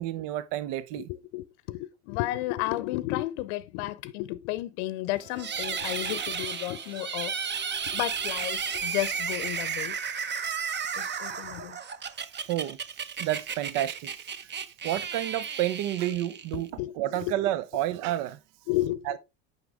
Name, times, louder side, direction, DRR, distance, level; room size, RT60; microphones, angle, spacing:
voice 1, 0.0-1.1 12.5-12.8 13.2-14.5 14.8-18.4 19.1-19.2, right 13 dB, 55° right, 0.7 m, -30 dB
voice 2, 1.0-7.4 7.9-10.0 10.9-11.8 16.5-17.4 18.7-19.2, left 16 dB, 65° left, 0.7 m, -33 dB
sound 1, 5.1-9.5, right 1 dB, 10° right, 1.5 m, -53 dB
sound 2, 5.4-16.7, right 6 dB, 30° right, 1.0 m, -33 dB
9.3 x 5.7 x 3.4 m
hypercardioid pair, 80°, 37 cm